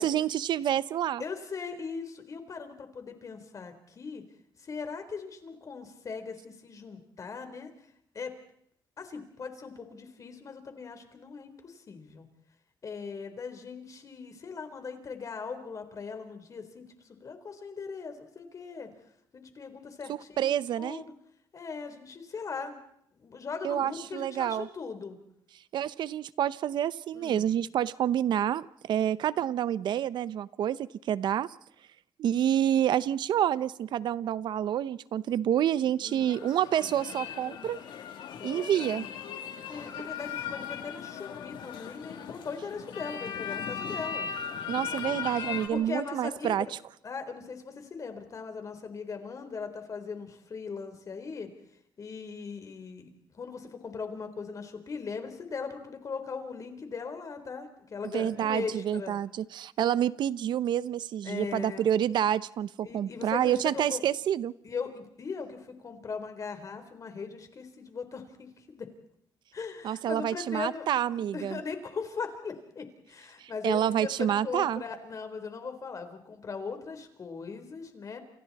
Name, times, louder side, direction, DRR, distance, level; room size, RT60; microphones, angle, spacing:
voice 1, 0.0-1.2 20.1-21.0 23.6-24.7 25.7-31.5 32.2-37.8 38.4-39.1 44.7-46.7 58.1-64.5 69.8-71.6 73.4-74.8, right 10 dB, 75° right, 16 dB, 0.8 m, -28 dB
voice 2, 1.2-4.2 4.6-7.7 8.1-8.3 9.0-12.3 12.8-18.9 19.3-21.1 21.5-22.8 23.1-25.2 27.1-27.5 36.0-36.5 36.8-37.0 38.4-39.1 39.4-44.3 45.7-46.8 47.0-51.5 52.0-59.2 61.2-61.9 62.8-64.0 64.6-68.9 69.5-78.2, left 5 dB, 45° left, 7 dB, 4.0 m, -39 dB
sound 1, 36.1-45.7, left 7 dB, 80° left, 2.9 m, -38 dB
28.5 x 28.5 x 4.2 m, 0.75 s
cardioid pair, 100°, 8 cm